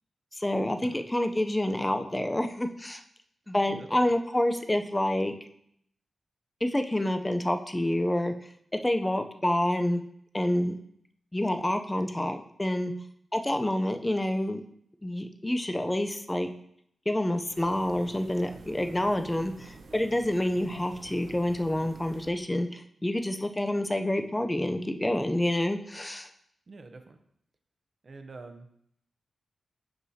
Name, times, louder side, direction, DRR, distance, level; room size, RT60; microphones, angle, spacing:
voice 1, 0.4-3.0 3.5-5.3 6.6-8.3 8.8-10.0 10.3-10.8 11.3-12.9 13.3-14.6 15.0-16.5 17.1-26.3, left 1 dB, 10° left, 6 dB, 0.4 m, -28 dB
voice 2, 3.7-4.1 26.7-27.2 28.0-28.7, right 3 dB, 35° right, 6 dB, 0.6 m, -46 dB
sound 1, 17.5-22.5, right 3 dB, 85° right, 0.9 m, -48 dB
11.0 x 4.8 x 2.7 m, 0.70 s
wide cardioid pair, 160°, 0 cm